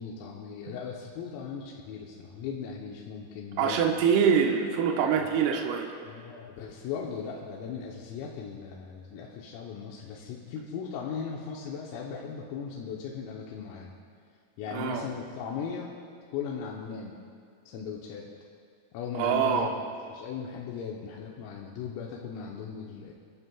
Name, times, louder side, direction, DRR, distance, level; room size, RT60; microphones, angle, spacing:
voice 1, 0.0-3.9 5.2-5.5 6.0-13.9 14.6-15.9 16.3-17.2 17.7-18.3 18.9-19.7 20.0-23.1, left 6 dB, 90° left, -2 dB, 3.7 m, -38 dB
voice 2, 3.6-5.9 14.7-15.0 19.1-19.7, right 7 dB, 75° right, 1 dB, 2.5 m, -24 dB
28.5 x 12.5 x 2.3 m, 2.2 s
omnidirectional pair, 5.9 m